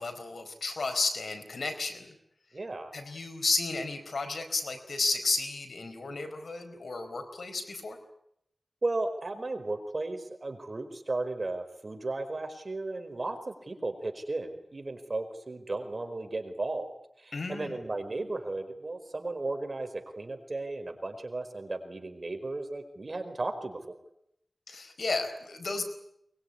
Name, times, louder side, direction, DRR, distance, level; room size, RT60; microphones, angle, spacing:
voice 1, 0.0-2.1 2.9-8.0 17.3-17.8 24.7-25.8, left 3 dB, 90° left, 7 dB, 4.4 m, -33 dB
voice 2, 2.5-3.0 8.8-16.9 17.2-23.8, right 2 dB, 50° right, 7 dB, 4.8 m, -35 dB
23.0 x 21.5 x 9.8 m, 0.75 s
wide cardioid pair, 55°, 0 cm